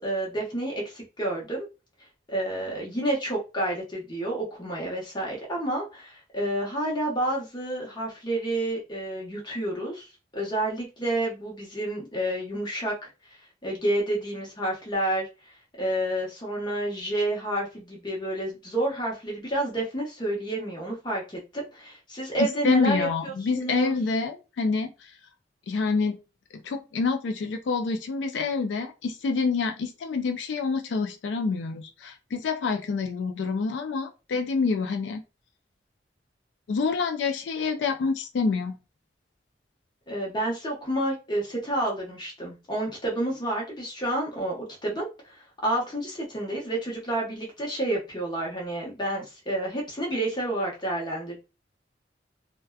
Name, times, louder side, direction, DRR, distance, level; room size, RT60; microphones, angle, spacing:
voice 1, 0.0-1.7 2.3-13.1 13.6-15.3 15.8-23.9 40.1-45.3 45.6-51.4, right 1 dB, 25° left, -2 dB, 0.9 m, -29 dB
voice 2, 22.4-24.9 25.7-26.2 26.6-35.2 36.7-38.8, left 4 dB, 85° left, 6 dB, 0.4 m, -27 dB
2.6 x 2.2 x 2.3 m, 0.29 s
head